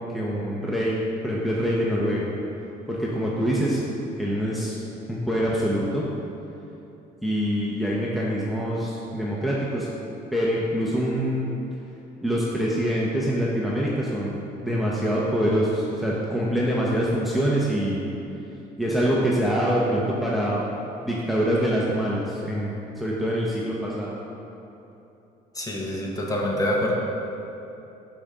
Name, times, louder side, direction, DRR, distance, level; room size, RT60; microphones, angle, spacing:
voice 1, 0.0-2.3 2.9-3.8 4.2-4.8 5.1-6.0 7.2-9.9 10.3-11.5 12.2-18.0 18.8-20.6 21.0-24.2, equal, ahead, -5 dB, 1.0 m, -25 dB
voice 2, 25.5-26.9, left 1 dB, 20° left, -2 dB, 1.4 m, -26 dB
11.5 x 5.2 x 3.8 m, 2.9 s
cardioid pair, 110°, 17 cm